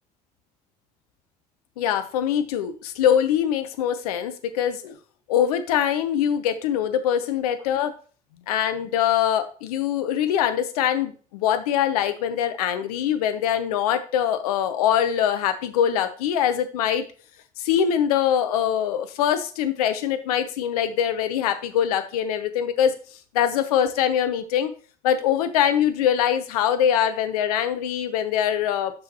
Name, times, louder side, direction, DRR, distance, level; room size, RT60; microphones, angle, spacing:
voice 1, 1.8-5.0 5.3-7.9 8.5-17.0 17.6-22.9 23.3-24.7 25.0-28.9, left 9 dB, 75° left, 10 dB, 0.7 m, -23 dB
7.7 x 5.8 x 2.9 m, 0.40 s
figure-of-eight pair, 55°, 20 cm